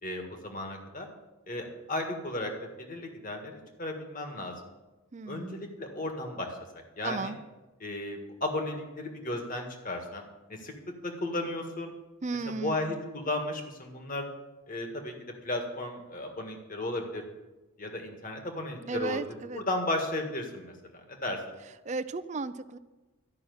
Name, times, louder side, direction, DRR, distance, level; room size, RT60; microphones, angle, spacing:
voice 1, 0.0-1.1 1.5-2.5 2.8-4.5 5.3-6.5 7.0-7.3 7.8-10.7 11.0-11.9 12.6-14.2 14.7-15.1 15.4-17.2 17.8-19.2 19.5-20.7 21.1-21.4, left 1 dB, 40° left, 3 dB, 1.7 m, -34 dB
voice 2, 5.1-5.6 7.0-7.4 12.2-12.9 18.9-19.6 21.8-22.8, right 3 dB, 35° right, 13 dB, 0.5 m, -34 dB
12.5 x 6.0 x 9.4 m, 1.1 s
head